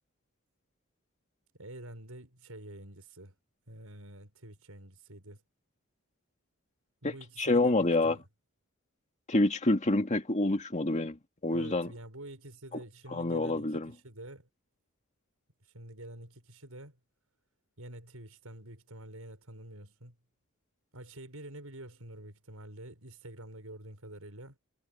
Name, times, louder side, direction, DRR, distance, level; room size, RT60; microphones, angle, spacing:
voice 1, 1.6-3.3 3.7-5.4 7.0-8.3 11.5-14.5 15.7-17.0 17.8-20.2 20.9-24.6, right 1 dB, 85° right, 6.1 m, -47 dB
voice 2, 7.0-8.2 9.3-11.9 13.1-13.9, left 2 dB, 35° left, 2.1 m, -27 dB
head